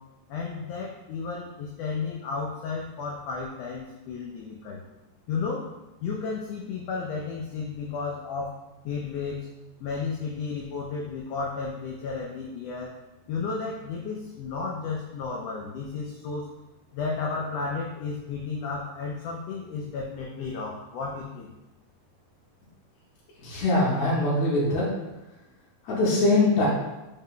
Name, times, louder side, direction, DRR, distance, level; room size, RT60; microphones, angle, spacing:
voice 1, 0.3-4.8 5.3-5.7 6.0-8.6 8.8-9.5 9.8-12.9 13.3-16.5 16.9-21.5, left 4 dB, 90° left, -2 dB, 1.4 m, -33 dB
voice 2, 23.4-24.9 25.8-26.7, left 2 dB, 70° left, -8 dB, 1.9 m, -22 dB
4.8 x 2.2 x 3.6 m, 1.0 s
omnidirectional pair, 3.4 m